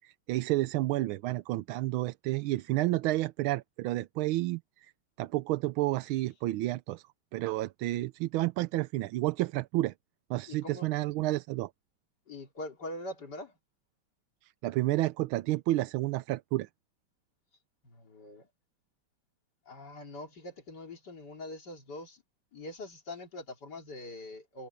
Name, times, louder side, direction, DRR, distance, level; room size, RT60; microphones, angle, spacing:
voice 1, 0.0-4.9 5.2-7.0 7.3-9.9 10.3-11.7 14.4-16.7, right 17 dB, 85° right, 1.4 m, -30 dB
voice 2, 10.5-10.9 12.3-13.5 17.8-18.5 19.7-22.2 22.5-24.7, left 1 dB, 55° left, 3.5 m, -43 dB
omnidirectional pair, 2.2 m